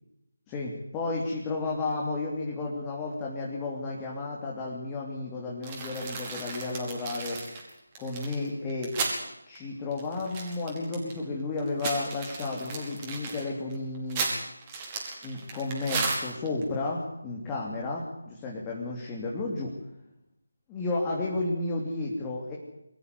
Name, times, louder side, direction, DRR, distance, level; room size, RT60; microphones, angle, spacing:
voice 1, 0.5-7.4 8.0-8.9 9.4-14.3 15.2-19.7 20.7-22.6, left 3 dB, 15° left, -2 dB, 3.1 m, -32 dB
sound 1, 5.6-9.2 9.6-9.7 9.9-11.2 11.6-16.6, right 4 dB, 20° right, 5.0 m, -34 dB
24.0 x 14.0 x 9.7 m, 0.85 s
figure-of-eight pair, 160°, 0 cm